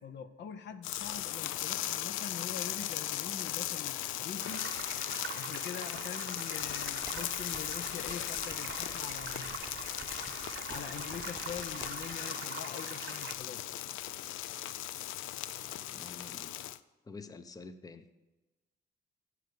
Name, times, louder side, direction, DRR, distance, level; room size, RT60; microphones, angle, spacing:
voice 1, 0.0-4.7 5.3-9.6 10.5-13.6, left 7 dB, 65° left, 11 dB, 0.8 m, -44 dB
sound 1, 0.8-16.8, left 13 dB, 85° left, 0.4 m, -38 dB
sound 2, 4.4-13.4, right 9 dB, 65° right, 0.7 m, -45 dB
sound 3, 6.6-12.2, right 3 dB, 10° right, 0.8 m, -53 dB
voice 2, 15.9-16.7 17.0-18.1, left 4 dB, 20° left, 11 dB, 0.6 m, -48 dB
10.5 x 4.7 x 8.0 m, 1.1 s
cardioid pair, 90°, 20 cm